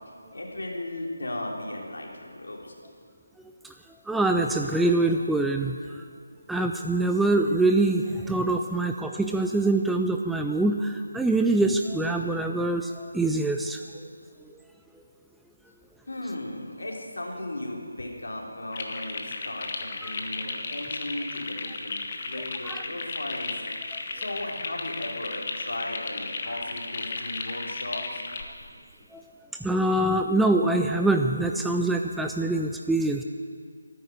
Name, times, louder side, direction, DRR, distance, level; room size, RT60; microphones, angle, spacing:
voice 1, 0.3-2.7 16.1-23.7 24.1-28.2, left 1 dB, 60° left, -1 dB, 3.0 m, -36 dB
voice 2, 4.1-5.8 6.5-13.8 20.0-20.1 22.6-22.8 23.9-24.0 29.1-29.2 29.6-33.2, right 2 dB, ahead, 3 dB, 0.4 m, -24 dB
sound 1, 18.7-28.4, left 4 dB, 35° left, 1.3 m, -34 dB
24.0 x 9.6 x 5.0 m, 2.1 s
figure-of-eight pair, 155°, 0 cm